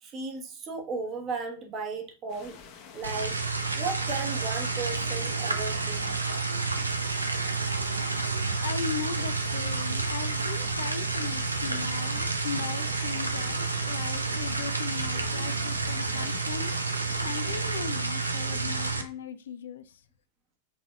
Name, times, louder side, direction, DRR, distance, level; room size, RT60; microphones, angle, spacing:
voice 1, 0.0-2.6 2.9-3.4 3.7-6.2, right 4 dB, 30° right, 1.2 m, -35 dB
sound 1, 2.3-17.8, left 6 dB, 40° left, 0.9 m, -48 dB
sound 2, 3.0-19.0, right 3 dB, 80° right, 0.6 m, -30 dB
voice 2, 8.6-16.7 17.2-20.0, left 8 dB, 65° left, 0.4 m, -38 dB
5.6 x 4.0 x 2.3 m
figure-of-eight pair, 90°, 0 cm